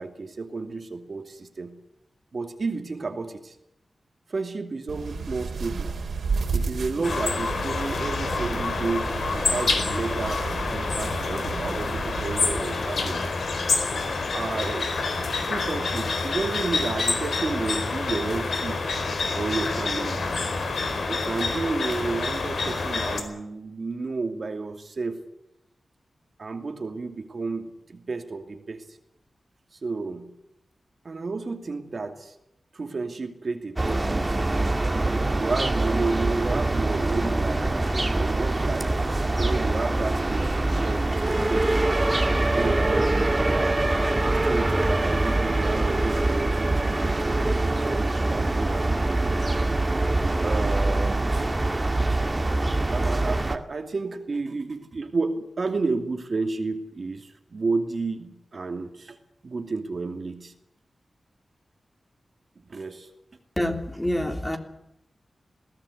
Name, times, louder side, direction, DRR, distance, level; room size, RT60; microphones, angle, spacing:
voice 1, 0.0-1.8 2.3-3.6 4.3-6.0 6.5-10.4 10.7-13.3 14.3-14.9 15.4-18.9 19.3-20.3 21.1-25.2 26.4-28.9 29.8-30.3 31.0-32.3 32.7-34.4 35.3-37.7 38.0-42.0 42.5-43.8 44.1-49.4 50.4-51.2 52.9-59.2 59.4-60.5 62.7-63.1, right 3 dB, 55° right, 6 dB, 2.7 m, -31 dB
sound 1, 4.9-12.6, right 4 dB, 80° right, 3.6 m, -32 dB
sound 2, 7.0-23.2, left 3 dB, 75° left, 4.6 m, -27 dB
sound 3, 33.8-53.6, right 2 dB, 25° right, 2.1 m, -24 dB
voice 2, 63.6-64.6, left 1 dB, 10° left, 5 dB, 3.3 m, -27 dB
21.5 x 17.5 x 9.7 m, 0.83 s
wide cardioid pair, 95°, 0 cm